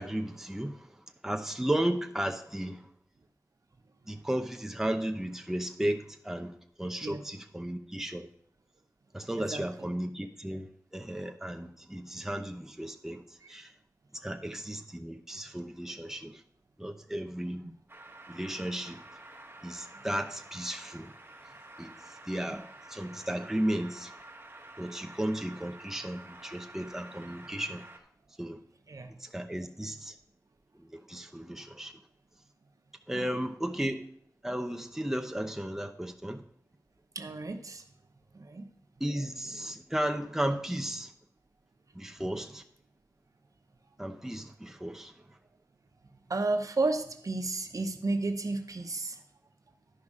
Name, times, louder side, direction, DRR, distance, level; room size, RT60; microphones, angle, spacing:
voice 1, 0.0-2.9 4.1-8.3 9.1-10.7 10.9-13.7 14.1-16.4 16.8-17.7 18.3-19.0 19.6-21.1 21.8-21.9 22.3-24.1 24.8-27.8 28.4-28.6 29.2-30.2 30.7-31.9 33.1-34.1 34.4-36.4 39.0-41.1 41.9-42.6 44.0-45.1, right 1 dB, 5° right, 0.7 m, -34 dB
sound 1, 17.9-28.0, right 2 dB, 35° right, 1.2 m, -50 dB
voice 2, 37.1-37.8 38.3-38.7 46.3-49.2, right 3 dB, 65° right, 0.9 m, -32 dB
11.5 x 5.3 x 4.9 m
wide cardioid pair, 70°, 6 cm